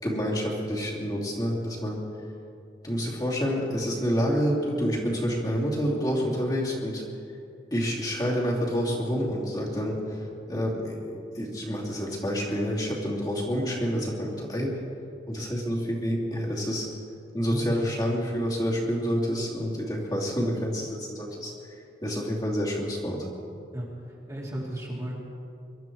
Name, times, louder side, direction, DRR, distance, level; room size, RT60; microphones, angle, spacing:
voice 1, 0.0-2.0 2.8-7.0 7.7-14.7 15.3-16.9 17.3-21.5 22.0-23.2, equal, 20° left, -5 dB, 2.8 m, -28 dB
voice 2, 17.5-17.9 23.7-23.9 24.3-25.2, equal, 20° right, -4 dB, 2.5 m, -33 dB
24.0 x 12.5 x 4.6 m, 2.5 s
head